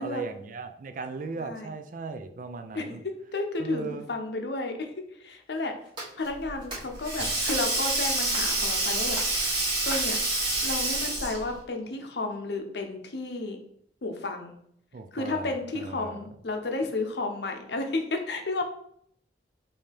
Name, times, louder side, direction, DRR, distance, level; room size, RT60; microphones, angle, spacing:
voice 1, 0.0-3.0 3.6-4.1 14.9-16.3, right 4 dB, 50° right, 7 dB, 0.4 m, -37 dB
voice 2, 1.4-1.7 2.7-3.0 3.3-5.7 6.2-9.2 9.8-10.2 10.6-13.6 14.0-14.6 15.1-18.6, left 2 dB, 70° left, 5 dB, 0.7 m, -32 dB
sound 1, 5.8-7.8 8.2-8.7 9.0-10.5, right 1 dB, 25° right, 1.5 m, -40 dB
Sink (filling or washing), 6.4-11.5, right 2 dB, 75° right, 1.8 m, -27 dB
5.4 x 2.8 x 3.4 m, 0.69 s
head